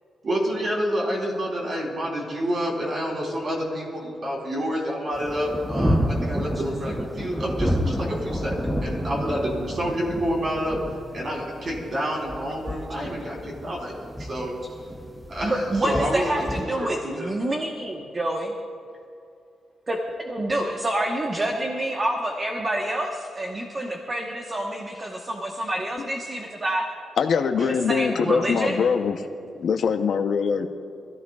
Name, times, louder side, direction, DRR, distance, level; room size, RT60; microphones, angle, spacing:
voice 1, 0.2-10.8 11.1-14.5 15.3-17.3 27.6-27.7, equal, 40° right, -2 dB, 3.4 m, -28 dB
sound 1, 5.1-16.6, equal, 5° right, 0.7 m, -30 dB
voice 2, 15.4-18.5 19.9-26.8 27.9-28.8, right 1 dB, 20° right, 0 dB, 1.1 m, -27 dB
voice 3, 27.2-29.2 29.6-30.7, left 6 dB, 55° left, 6 dB, 0.7 m, -22 dB
24.5 x 14.5 x 2.4 m, 2.5 s
wide cardioid pair, 165°, 0 cm